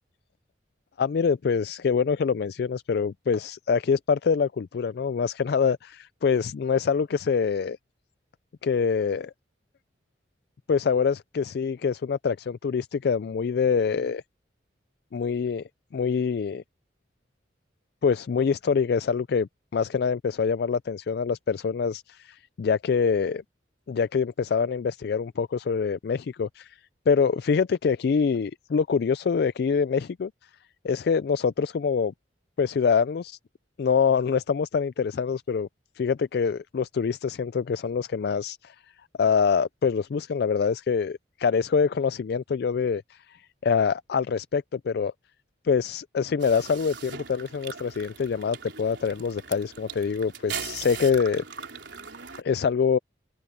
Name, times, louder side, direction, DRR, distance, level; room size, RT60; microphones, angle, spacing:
voice 1, 1.0-7.8 8.6-9.3 10.7-14.2 15.1-15.6 15.9-16.6 18.0-23.4 23.9-26.8 27.1-30.3 30.8-32.1 32.6-33.4 33.8-35.7 36.0-38.8 39.2-45.1 45.6-51.4 52.4-53.0, left 6 dB, 60° left, 0.3 m, -25 dB
sound 1, 46.4-52.4, right 6 dB, 75° right, 3.8 m, -40 dB
open air
head